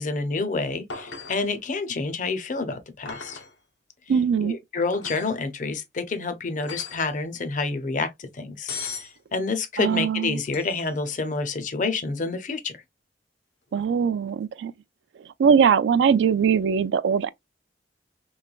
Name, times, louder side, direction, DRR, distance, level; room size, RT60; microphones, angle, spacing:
voice 1, 0.0-3.4 4.4-12.8, left 3 dB, 45° left, 0.5 m, -28 dB
sound 1, 0.9-1.5 3.1-3.5 4.9-5.4 6.6-7.1 8.7-9.1 10.5-10.9 13.7-13.8, left 5 dB, 80° left, 0.8 m, -37 dB
voice 2, 4.1-4.6 9.8-10.4 13.7-14.7 15.4-17.3, right 6 dB, 75° right, 0.3 m, -21 dB
3.2 x 3.0 x 2.3 m
head